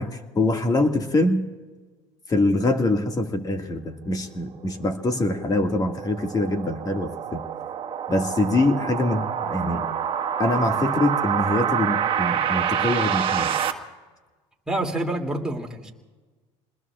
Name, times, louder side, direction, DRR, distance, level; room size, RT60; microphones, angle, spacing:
voice 1, 0.0-1.4 2.3-7.4 8.1-9.9 10.4-13.5, left 2 dB, 25° left, 4 dB, 2.0 m, -24 dB
sound 1, 5.0-13.7, right 8 dB, 35° right, 1.8 m, -27 dB
voice 2, 14.7-15.9, right 1 dB, 5° right, 0 dB, 2.7 m, -27 dB
28.0 x 20.5 x 2.5 m, 1.3 s
supercardioid pair, 95°, 15 cm